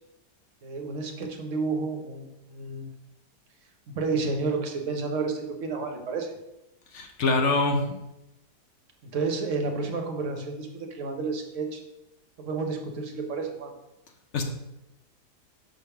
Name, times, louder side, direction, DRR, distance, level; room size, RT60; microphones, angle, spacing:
voice 1, 0.6-2.9 3.9-6.3 9.1-11.8 12.4-13.7, right 4 dB, 55° right, 3 dB, 1.1 m, -31 dB
voice 2, 6.9-7.9 14.3-14.4, left 3 dB, 60° left, 3 dB, 0.8 m, -24 dB
5.7 x 3.4 x 5.7 m, 0.92 s
omnidirectional pair, 1.8 m